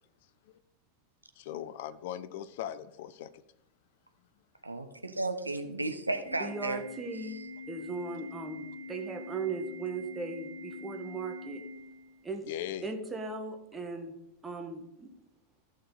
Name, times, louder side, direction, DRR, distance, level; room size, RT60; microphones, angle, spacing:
voice 1, 1.4-3.3 12.5-12.9, left 11 dB, 50° left, 0.6 m, -39 dB
voice 2, 4.6-6.8, right 2 dB, 85° right, 1.0 m, -33 dB
Organ, 6.3-12.3, left 2 dB, 60° right, 4.2 m, -44 dB
voice 3, 6.4-7.4 7.7-11.6 12.2-12.5 12.8-14.1 14.4-15.1, right 4 dB, 15° right, 1.6 m, -38 dB
14.5 x 6.5 x 4.1 m
figure-of-eight pair, 90°, 0 cm